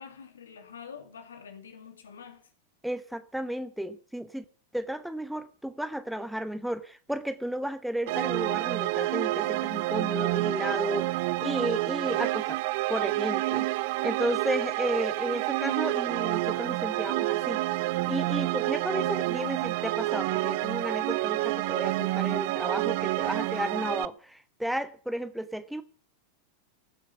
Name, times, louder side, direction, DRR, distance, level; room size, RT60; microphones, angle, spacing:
voice 1, 0.0-2.5 14.2-14.3, left 6 dB, 65° left, 2.6 m, -46 dB
voice 2, 2.8-4.4 4.7-12.6 12.9-13.7 14.0-17.6 18.1-25.8, right 1 dB, ahead, 1.0 m, -33 dB
sound 1, 8.1-24.0, right 18 dB, 50° right, 0.6 m, -28 dB
15.5 x 7.5 x 7.9 m
figure-of-eight pair, 90°, 0 cm